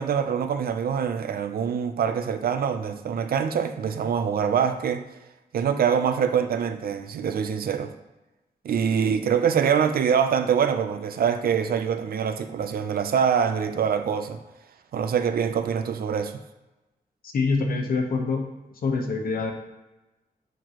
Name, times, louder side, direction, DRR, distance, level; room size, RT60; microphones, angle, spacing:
voice 1, 0.0-5.0 5.5-7.9 8.6-14.4 14.9-16.4, right 7 dB, 75° right, 0.5 m, -24 dB
voice 2, 17.2-18.5 18.8-19.5, left 4 dB, 70° left, 1.0 m, -25 dB
7.9 x 4.5 x 3.0 m
wide cardioid pair, 155°, 16 cm